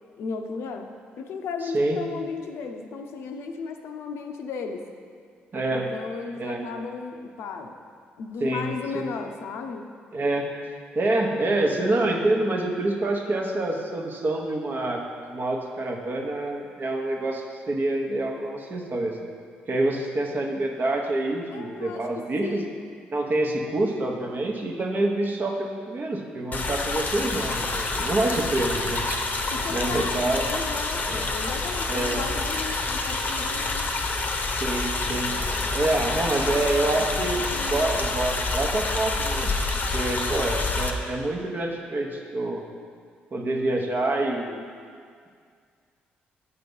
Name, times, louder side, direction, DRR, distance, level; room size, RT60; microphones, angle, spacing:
voice 1, 0.2-0.9 1.2-4.9 5.7-7.7 8.2-9.8 21.5-22.0 22.4-22.7 29.5-33.9 35.1-38.0, left 5 dB, 75° left, 4 dB, 0.5 m, -35 dB
voice 2, 1.6-2.0 5.5-5.9 6.4-6.6 8.4-9.1 10.1-10.5 10.9-15.0 15.3-19.1 19.7-22.6 23.1-29.2 29.7-30.5 31.1-31.3 31.9-32.2 34.6-35.3 35.7-39.5 39.9-42.6 43.3-44.6, right 2 dB, 45° right, 1 dB, 0.9 m, -27 dB
sound 1, 26.5-40.9, left 3 dB, 40° left, 0.7 m, -27 dB
8.1 x 2.9 x 5.3 m, 2.1 s
supercardioid pair, 60°, 4 cm